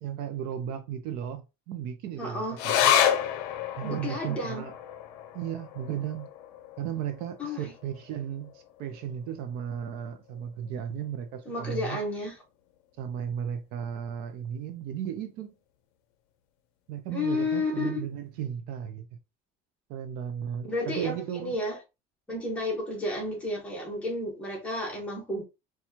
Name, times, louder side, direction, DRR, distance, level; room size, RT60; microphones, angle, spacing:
voice 1, 0.0-3.0 3.8-4.8 5.3-6.3 6.8-12.0 13.0-15.5 16.9-19.1 19.9-21.6, right 9 dB, 55° right, 0.5 m, -35 dB
voice 2, 2.2-2.6 3.8-4.6 7.4-7.7 11.5-12.3 17.1-18.0 20.7-21.1 21.4-21.8 22.3-25.4, left 2 dB, 5° left, 1.0 m, -31 dB
sound 1, 2.6-9.3 9.7-9.8 10.1-10.8 11.3-11.4, left 9 dB, 70° left, 0.5 m, -30 dB
4.3 x 2.3 x 2.7 m
cardioid pair, 180°, 19 cm